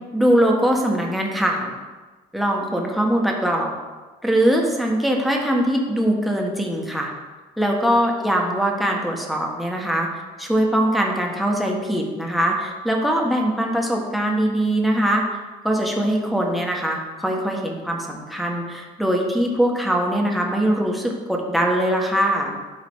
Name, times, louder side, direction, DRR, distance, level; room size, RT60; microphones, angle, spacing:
voice 1, 0.1-1.7 2.3-3.7 4.2-7.1 7.6-15.4 15.6-22.5, right 1 dB, ahead, -1 dB, 1.3 m, -22 dB
12.0 x 4.0 x 3.6 m, 1.3 s
cardioid pair, 110°, 17 cm